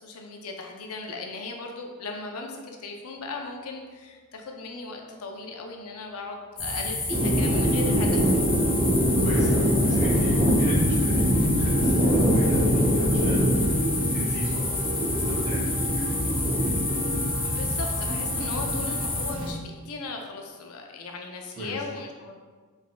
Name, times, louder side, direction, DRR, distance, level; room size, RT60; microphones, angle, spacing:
voice 1, 0.0-8.3 15.9-16.0 17.4-22.3, left 3 dB, 80° left, 2 dB, 0.6 m, -37 dB
sound 1, 5.8-6.2 6.6-15.5, left 1 dB, 25° left, 0.6 m, -44 dB
sound 2, 6.6-19.3, left 2 dB, 55° left, 1.2 m, -29 dB
sound 3, 7.1-19.5, equal, 25° right, 0.6 m, -24 dB
voice 2, 9.2-14.9 15.1-16.3 21.5-21.8, equal, 55° right, -12 dB, 1.4 m, -34 dB
4.0 x 3.6 x 2.2 m, 1.4 s
head